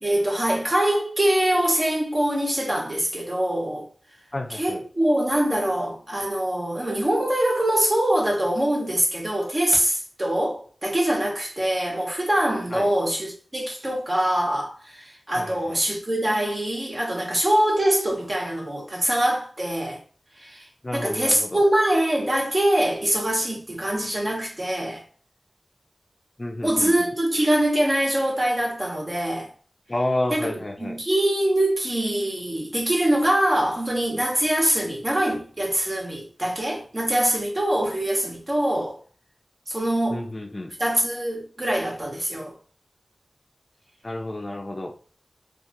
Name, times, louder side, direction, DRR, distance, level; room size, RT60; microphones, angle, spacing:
voice 1, 0.0-3.9 4.5-20.0 20.4-25.0 26.6-29.5 30.3-30.5 30.8-39.0 39.7-40.3 40.8-42.6, right 1 dB, 35° right, 1.2 m, -23 dB
voice 2, 4.3-4.8 12.7-12.9 15.4-15.8 20.8-21.6 26.4-27.1 29.9-31.0 40.1-40.8 44.0-44.9, left 1 dB, 35° left, 0.5 m, -30 dB
2.8 x 2.5 x 3.7 m
wide cardioid pair, 65°, 0 cm